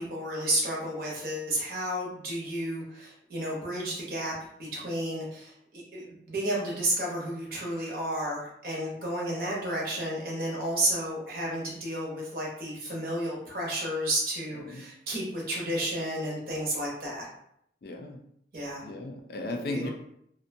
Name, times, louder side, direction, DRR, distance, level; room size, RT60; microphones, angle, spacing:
voice 1, 0.0-17.3 18.5-18.9 19.7-19.9, right 1 dB, 55° right, -3 dB, 0.8 m, -32 dB
voice 2, 17.8-18.2 18.8-19.9, left 2 dB, 55° left, 3 dB, 0.3 m, -35 dB
2.6 x 2.1 x 2.6 m, 0.73 s
head